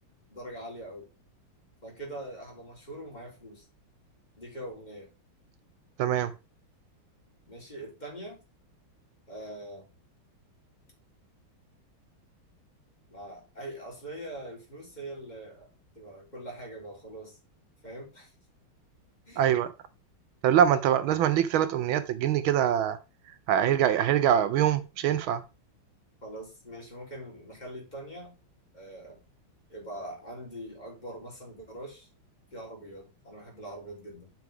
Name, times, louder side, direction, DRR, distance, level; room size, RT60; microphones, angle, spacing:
voice 1, 0.3-1.1 1.8-3.6 4.4-5.1 7.5-8.4 9.3-9.9 13.1-15.7 16.0-17.4 17.8-18.3 19.3-19.5 26.2-28.3 28.7-29.2 29.7-32.1 32.5-34.3, right 1 dB, 20° left, 3.7 m, -43 dB
voice 2, 6.0-6.3 19.4-19.7 20.4-23.0 23.5-25.4, right 10 dB, 80° right, 1.5 m, -24 dB
9.5 x 6.0 x 3.5 m
omnidirectional pair, 2.2 m